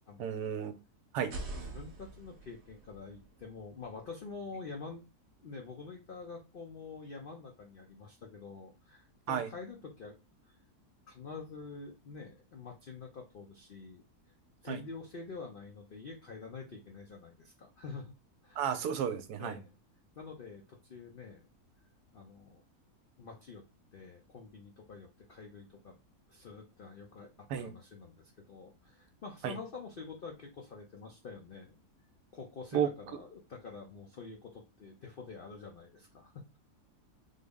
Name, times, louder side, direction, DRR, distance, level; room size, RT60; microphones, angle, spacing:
voice 1, 0.2-0.7 1.1-1.3 9.3-9.5 14.7-14.8 18.6-19.6 27.5-27.7 29.4-29.6 32.7-32.9, right 8 dB, 85° right, 8 dB, 1.2 m, -32 dB
sound 1, 1.2-5.0, right 2 dB, 55° right, 0.8 m, -47 dB
voice 2, 1.7-5.0 5.4-10.2 10.5-10.6 11.1-14.0 14.6-18.1 18.4-18.7 19.4-19.7 20.2-21.4 22.1-22.6 23.2-23.6 23.9-25.9 26.3-31.8 32.3-36.6, left 4 dB, 85° left, 2 dB, 0.4 m, -47 dB
3.6 x 2.1 x 3.5 m, 0.28 s
omnidirectional pair, 1.7 m